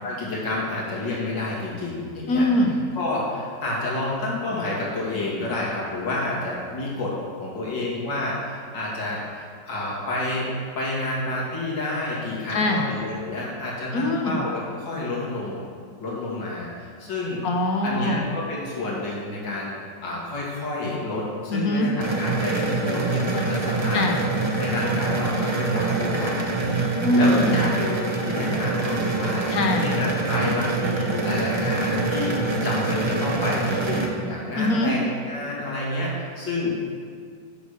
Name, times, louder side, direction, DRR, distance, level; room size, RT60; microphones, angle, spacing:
voice 1, 0.0-2.5 3.0-7.1 7.4-15.6 16.0-17.4 17.8-19.8 20.0-21.9 22.2-24.0 24.6-26.7 27.1-32.3 32.6-36.7, left 2 dB, 80° left, -5 dB, 2.8 m, -29 dB
voice 2, 2.3-2.8 12.5-12.9 13.9-14.4 17.4-18.3 21.5-21.9 23.9-24.2 27.0-27.7 29.5-29.9 34.6-34.9, left 1 dB, 60° left, 2 dB, 1.3 m, -22 dB
sound 1, 22.0-34.1, right 3 dB, 40° right, 0.4 m, -25 dB
8.2 x 6.1 x 6.5 m, 2.1 s
omnidirectional pair, 2.0 m